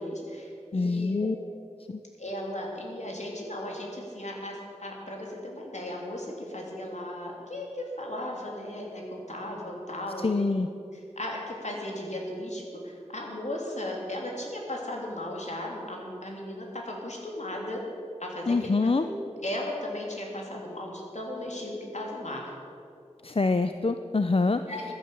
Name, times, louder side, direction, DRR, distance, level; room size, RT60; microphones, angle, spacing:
voice 1, 0.0-1.3 2.2-10.5 10.9-17.9 18.2-18.7 19.0-22.5 24.6-24.9, left 1 dB, 70° left, -1 dB, 3.1 m, -36 dB
voice 2, 0.7-1.4 1.9-2.0 10.2-10.7 18.5-19.0 23.2-24.6, left 3 dB, 50° left, 8 dB, 0.5 m, -25 dB
15.5 x 10.5 x 6.9 m, 2.6 s
wide cardioid pair, 50°, 12 cm